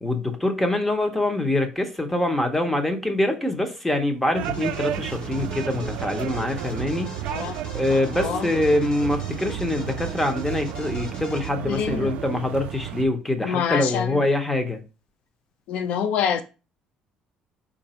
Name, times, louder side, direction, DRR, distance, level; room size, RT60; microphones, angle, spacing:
voice 1, 0.0-7.1 7.7-14.8, left 1 dB, 10° left, 0.8 m, -24 dB
sound 1, 4.3-13.0, right 11 dB, 75° right, 0.4 m, -32 dB
sound 2, 4.4-11.5, left 1 dB, 50° left, 1.1 m, -40 dB
voice 2, 7.9-8.5 11.7-12.1 13.4-14.2 15.7-16.4, left 7 dB, 65° left, 0.5 m, -26 dB
4.7 x 2.6 x 4.2 m
cardioid pair, 130°, 2 cm